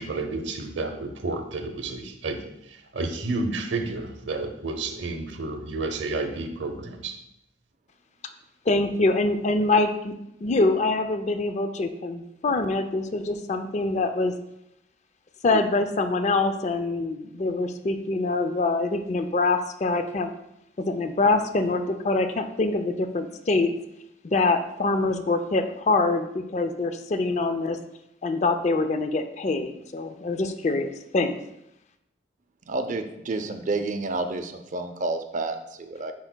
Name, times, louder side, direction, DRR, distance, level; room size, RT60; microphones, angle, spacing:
voice 1, 0.0-2.4 2.9-7.2, right 3 dB, 80° right, 6 dB, 0.8 m, -31 dB
voice 2, 8.7-10.1 10.4-14.3 15.4-20.3 20.8-23.7 24.2-27.8 28.2-31.4, left 3 dB, 40° left, 8 dB, 0.4 m, -24 dB
voice 3, 32.7-36.1, right 2 dB, 45° right, 7 dB, 0.5 m, -30 dB
10.5 x 4.4 x 2.2 m, 0.83 s
head